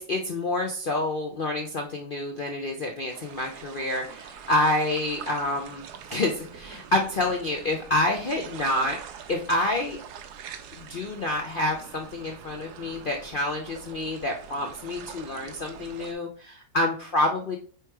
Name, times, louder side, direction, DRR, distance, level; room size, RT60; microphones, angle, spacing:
voice 1, 0.0-5.8 6.1-9.0 9.3-10.0 10.7-17.6, left 1 dB, 45° left, 2 dB, 0.7 m, -28 dB
sound 1, 3.1-16.1, right 8 dB, 80° right, 1.3 m, -44 dB
8.0 x 3.1 x 4.7 m, 0.43 s
omnidirectional pair, 1.7 m